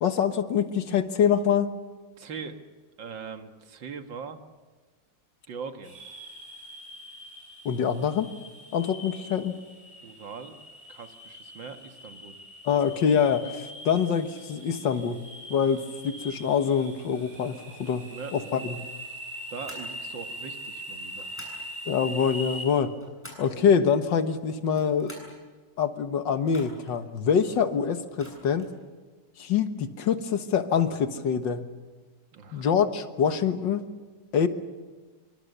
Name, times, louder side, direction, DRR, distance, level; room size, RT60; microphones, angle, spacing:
voice 1, 0.0-1.7 7.7-8.3 8.7-9.6 12.7-15.2 15.5-18.8 21.9-23.0 23.4-25.1 25.8-28.7 29.4-31.6 32.5-33.9 34.3-34.5, left 7 dB, 85° left, 9 dB, 2.0 m, -25 dB
voice 2, 2.2-2.6 3.0-4.4 5.5-5.9 10.0-10.5 10.9-12.4 18.1-18.7 19.5-21.3 32.3-32.6, right 5 dB, 90° right, 6 dB, 2.4 m, -41 dB
sound 1, 5.8-22.7, equal, 20° right, 7.8 m, -42 dB
sound 2, 19.6-19.9 21.1-21.6 22.7-23.5 24.6-25.4 26.4-27.0 28.1-28.7, equal, 5° left, 7.5 m, -47 dB
26.5 x 25.0 x 6.8 m, 1.3 s
omnidirectional pair, 2.0 m